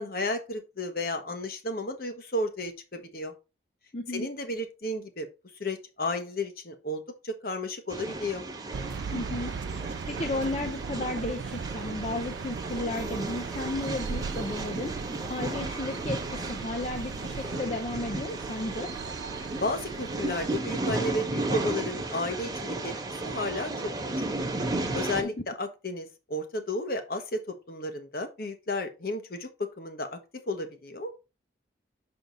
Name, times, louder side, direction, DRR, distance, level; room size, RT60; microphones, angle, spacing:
voice 1, 0.0-3.3 4.1-5.3 5.6-8.4 19.6-22.9 23.2-23.9 24.9-30.2 30.5-31.1, left 1 dB, 55° left, 7 dB, 1.2 m, -33 dB
voice 2, 3.9-4.3 9.1-14.9 15.3-18.9 25.2-25.3, left 2 dB, 35° left, 3 dB, 0.6 m, -34 dB
sound 1, 7.9-25.2, right 2 dB, 20° right, 1.1 m, -34 dB
sound 2, 8.7-20.6, right 5 dB, 75° right, 0.4 m, -38 dB
6.1 x 5.0 x 3.9 m, 0.28 s
head